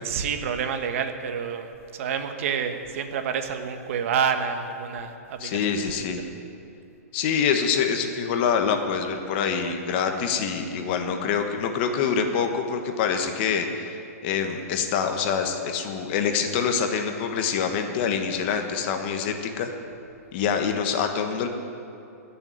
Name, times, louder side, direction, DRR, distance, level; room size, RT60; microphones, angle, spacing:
voice 1, 0.0-6.2, right 7 dB, 55° right, 7 dB, 1.5 m, -29 dB
voice 2, 5.4-6.3 7.1-19.7 20.3-21.5, left 6 dB, 40° left, 5 dB, 1.3 m, -25 dB
16.0 x 7.1 x 9.4 m, 2.7 s
hypercardioid pair, 150°, 9 cm